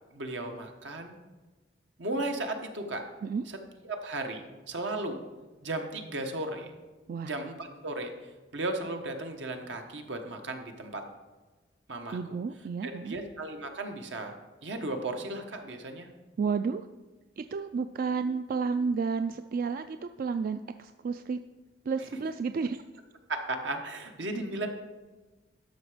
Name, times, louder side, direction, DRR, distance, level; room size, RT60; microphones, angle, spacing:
voice 1, 0.1-1.2 2.0-3.0 3.5-3.6 3.8-5.2 5.6-6.7 7.2-8.1 8.5-11.0 11.9-12.4 12.8-14.4 14.6-16.1 23.3-24.7, right 2 dB, 80° right, 4 dB, 1.2 m, -35 dB
voice 2, 12.1-13.2 16.4-16.9 17.4-21.4 21.9-22.8, right 5 dB, 50° right, 10 dB, 0.3 m, -31 dB
12.0 x 6.0 x 5.0 m, 1.2 s
head